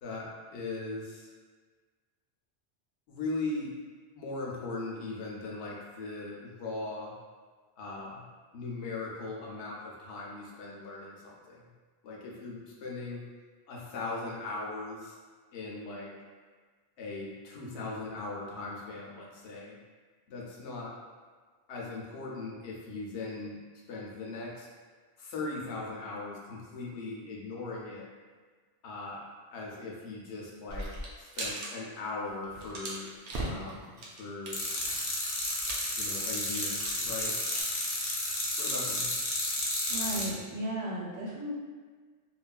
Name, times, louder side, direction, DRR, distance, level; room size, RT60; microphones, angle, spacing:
voice 1, 0.0-1.3 3.1-3.7 4.1-7.1 7.8-8.2 8.5-11.7 12.0-13.2 13.7-15.2 15.5-16.1 17.0-19.8 20.3-20.9 21.7-23.6 23.9-24.7 25.2-28.1 28.8-29.2 29.5-30.9 31.2-33.1 33.4-34.6 36.0-37.4 38.6-39.1, left 3 dB, 85° left, -3 dB, 0.9 m, -39 dB
sound 1, 30.7-31.7 32.0-32.1 32.4-37.6, right 1 dB, 85° right, 0.9 m, -39 dB
sound 2, 34.5-40.3, left 1 dB, 55° left, 0.7 m, -32 dB
voice 2, 39.9-41.5, right 1 dB, 50° right, -6 dB, 0.6 m, -35 dB
3.0 x 2.4 x 2.2 m, 1.5 s
omnidirectional pair, 1.1 m